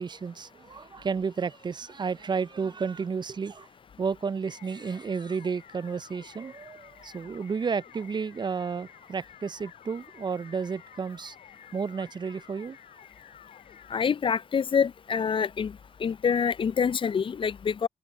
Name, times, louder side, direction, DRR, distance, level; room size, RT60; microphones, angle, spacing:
voice 1, 0.0-3.7 4.0-11.4 11.7-12.8, right 5 dB, 35° right, 0.4 m, -32 dB
sound 1, 4.4-14.1, left 9 dB, 70° left, 3.7 m, -52 dB
voice 2, 13.9-15.7 16.0-17.9, left 6 dB, 40° left, 0.4 m, -26 dB
open air
hypercardioid pair, 40°, 13 cm